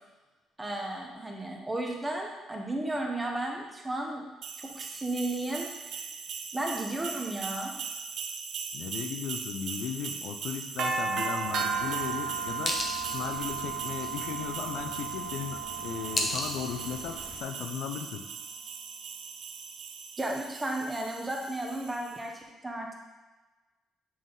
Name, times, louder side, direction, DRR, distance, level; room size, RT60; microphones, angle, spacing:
voice 1, 0.6-4.2 4.6-6.0 6.5-7.7 20.2-22.9, right 1 dB, 10° right, 0 dB, 0.8 m, -34 dB
sound 1, 4.4-22.1, right 6 dB, 60° right, 0.5 m, -36 dB
voice 2, 8.7-12.8 13.1-18.3, left 7 dB, 75° left, 5 dB, 0.5 m, -36 dB
sound 2, 11.4-17.4, left 1 dB, 25° left, 0.7 m, -38 dB
7.6 x 3.5 x 3.9 m, 1.2 s
cardioid pair, 155°, 0 cm